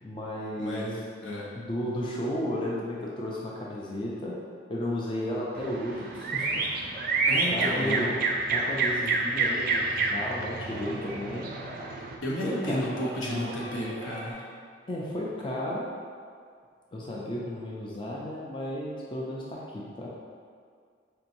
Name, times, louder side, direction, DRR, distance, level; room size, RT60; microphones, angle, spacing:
voice 1, 0.0-0.9 1.6-4.4 4.7-6.7 7.5-8.2 8.5-11.5 12.4-12.8 14.9-15.9 16.9-20.1, left 1 dB, 25° left, -4 dB, 0.4 m, -33 dB
voice 2, 0.6-1.5 7.3-8.1 12.2-14.5, equal, 85° left, -4 dB, 0.8 m, -32 dB
sound 1, 5.6-12.2, right 3 dB, 45° right, 0.3 m, -28 dB
sound 2, 6.3-8.2 8.6-14.3, right 1 dB, 5° left, 1.1 m, -45 dB
4.5 x 2.8 x 2.5 m, 2.1 s
head